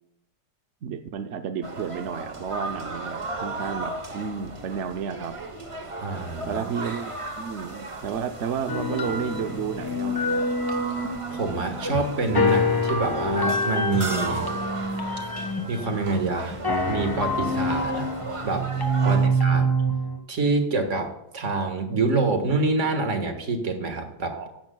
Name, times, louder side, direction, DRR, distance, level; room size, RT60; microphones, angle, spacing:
voice 1, 0.8-5.4 6.5-10.5 19.0-19.7 24.3-24.6, right 7 dB, 65° right, 8 dB, 0.7 m, -32 dB
sound 1, 1.6-19.3, right 2 dB, 30° right, 0.6 m, -36 dB
voice 2, 6.0-6.6 10.9-11.0 11.3-14.5 15.7-16.6 16.9-18.1 18.4-18.7 19.0-19.7 20.3-24.4, right 3 dB, 45° right, 5 dB, 1.7 m, -26 dB
sound 2, 8.7-20.2, equal, 20° left, 0.7 m, -26 dB
14.5 x 11.0 x 2.3 m, 0.88 s
omnidirectional pair, 1.9 m